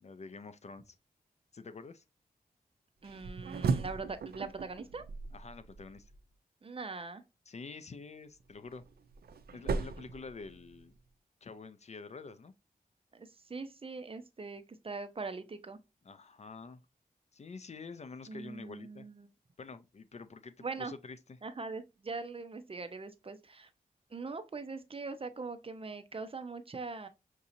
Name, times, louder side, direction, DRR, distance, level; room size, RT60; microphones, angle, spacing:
voice 1, 0.0-0.9 1.5-2.0 5.3-6.1 7.5-8.9 9.5-11.0 11.4-12.5 16.0-16.8 17.3-19.1 19.6-21.4, left 4 dB, 45° left, 0.4 m, -47 dB
voice 2, 3.0-5.0 6.6-7.2 13.1-15.8 18.3-19.3 20.6-20.9 21.4-23.7 24.1-27.1, right 4 dB, 35° right, 0.6 m, -42 dB
sound 1, 3.0-6.2 8.4-11.0, right 4 dB, 85° right, 0.4 m, -37 dB
5.9 x 2.7 x 2.5 m
wide cardioid pair, 85°, 16 cm